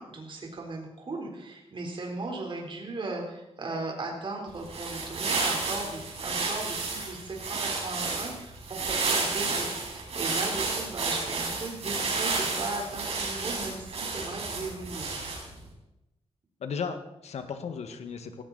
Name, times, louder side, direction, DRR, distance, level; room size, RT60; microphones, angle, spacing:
voice 1, 0.0-15.1, right 3 dB, 50° right, 0 dB, 4.0 m, -37 dB
sound 1, 4.5-15.6, right 4 dB, 70° right, 5.2 m, -31 dB
voice 2, 16.6-18.4, left 6 dB, 85° left, 7 dB, 1.8 m, -35 dB
18.0 x 16.5 x 4.2 m, 0.90 s
wide cardioid pair, 105°, 11 cm